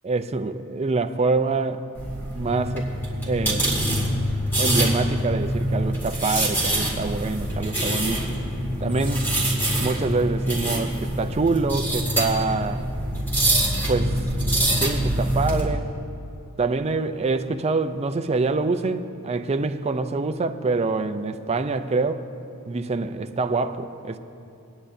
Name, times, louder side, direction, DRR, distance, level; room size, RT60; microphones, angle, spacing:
voice 1, 0.0-1.9 2.3-3.7 4.6-8.3 8.8-9.3 9.8-12.9 13.9-14.2 14.5-15.9 16.6-22.2 22.6-24.2, right 3 dB, 30° right, 7 dB, 0.5 m, -25 dB
sound 1, 2.0-15.6, right 1 dB, 10° left, 2.3 m, -25 dB
22.5 x 9.9 x 2.7 m, 2.6 s
head